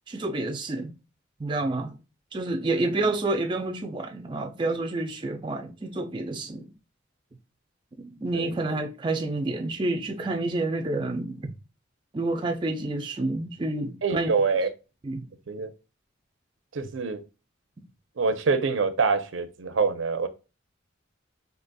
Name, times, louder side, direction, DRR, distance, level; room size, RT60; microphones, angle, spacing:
voice 1, 0.1-0.9 1.4-2.0 2.3-6.7 8.0-11.5 12.1-14.3 15.0-15.2, right 2 dB, 25° right, 0.4 m, -29 dB
voice 2, 14.0-14.7 15.5-15.7 16.7-17.2 18.2-20.3, right 4 dB, 75° right, 0.6 m, -25 dB
4.0 x 2.8 x 2.2 m
head